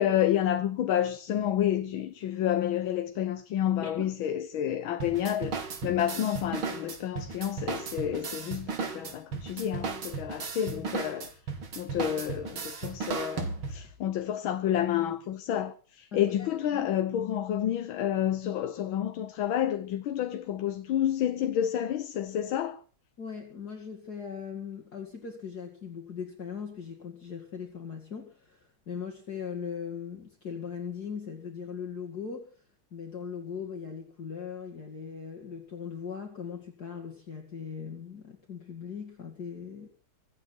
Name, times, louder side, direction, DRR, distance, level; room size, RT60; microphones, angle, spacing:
voice 1, 0.0-11.3 11.8-22.8, left 10 dB, 80° left, 1.7 m, -29 dB
sound 1, 5.0-13.9, right 5 dB, 85° right, 3.0 m, -36 dB
voice 2, 16.1-16.9 23.2-32.6 32.9-39.9, left 6 dB, 50° left, 2.7 m, -39 dB
25.0 x 8.8 x 6.0 m
omnidirectional pair, 2.2 m